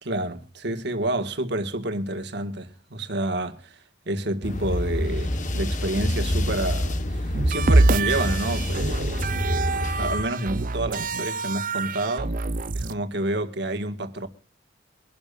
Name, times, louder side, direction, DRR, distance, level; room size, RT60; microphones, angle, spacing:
voice 1, 0.0-3.8 4.1-12.3 12.7-14.3, right 1 dB, 65° right, 1.8 m, -29 dB
sound 1, 4.4-10.2, left 1 dB, 45° left, 1.3 m, -27 dB
sound 2, 7.3-12.9, right 3 dB, 45° right, 0.6 m, -25 dB
24.0 x 12.0 x 2.5 m
head